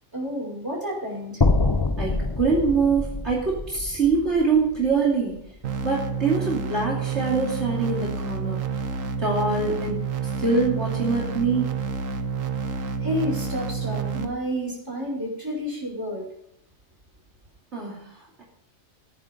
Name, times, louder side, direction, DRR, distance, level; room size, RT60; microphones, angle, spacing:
voice 1, 0.1-1.4 13.0-16.3, equal, 15° right, -3 dB, 5.2 m, -30 dB
sound 1, 1.4-5.6, left 3 dB, 25° left, 0.6 m, -26 dB
voice 2, 2.0-5.4 5.8-8.7 9.2-10.0 10.4-11.7 17.7-18.0, right 4 dB, 55° right, -4 dB, 3.1 m, -24 dB
sound 2, 5.6-14.3, right 5 dB, 70° right, 1.4 m, -29 dB
15.0 x 9.9 x 5.3 m, 0.72 s
omnidirectional pair, 1.4 m